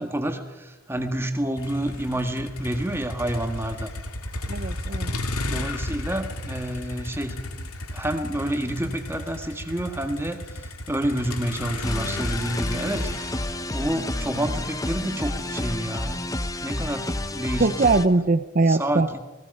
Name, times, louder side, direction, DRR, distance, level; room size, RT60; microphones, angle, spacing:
voice 1, 0.0-3.9 5.5-16.3 16.6-17.9 18.7-19.2, right 1 dB, 10° right, 6 dB, 1.8 m, -29 dB
Motor vehicle (road), 1.6-17.7, left 2 dB, 85° left, 2.5 m, -35 dB
voice 2, 4.5-5.1 17.6-19.1, right 3 dB, 40° right, 9 dB, 0.6 m, -21 dB
sound 1, 11.8-18.1, left 1 dB, 15° left, 0.8 m, -30 dB
28.5 x 20.0 x 5.5 m, 1.2 s
head